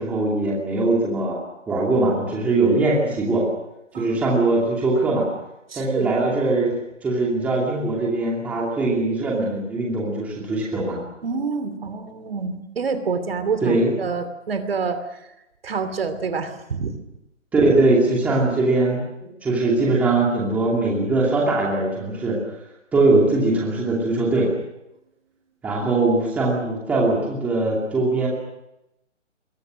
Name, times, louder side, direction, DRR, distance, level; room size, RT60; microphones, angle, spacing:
voice 1, 0.0-1.4 1.7-3.4 4.0-5.3 5.7-6.8 7.0-11.0 13.6-13.9 17.5-22.4 22.9-24.5 25.6-28.3, right 2 dB, 5° right, -4 dB, 2.6 m, -21 dB
voice 2, 5.7-6.1 11.2-15.0 15.6-16.9, right 5 dB, 50° right, 10 dB, 2.9 m, -27 dB
28.0 x 22.5 x 6.4 m, 0.88 s
hypercardioid pair, 175°, 37 cm